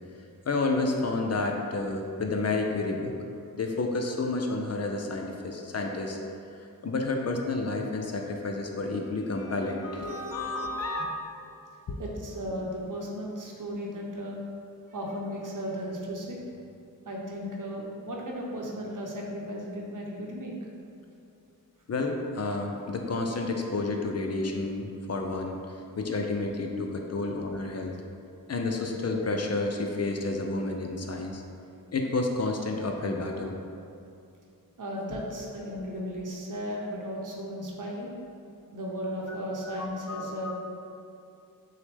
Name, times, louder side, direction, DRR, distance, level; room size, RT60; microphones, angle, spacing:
voice 1, 0.5-3.1 3.5-6.2 6.6-11.2 11.9-12.0 21.9-27.9 28.5-31.4 31.9-33.6 39.3-39.4 39.6-40.5, left 3 dB, 45° left, 2 dB, 0.5 m, -30 dB
voice 2, 12.0-14.4 14.9-16.4 17.0-20.5 34.8-38.1 38.7-40.5, equal, 55° right, -2 dB, 0.8 m, -35 dB
6.1 x 2.1 x 3.4 m, 2.6 s
cardioid pair, 50°, 37 cm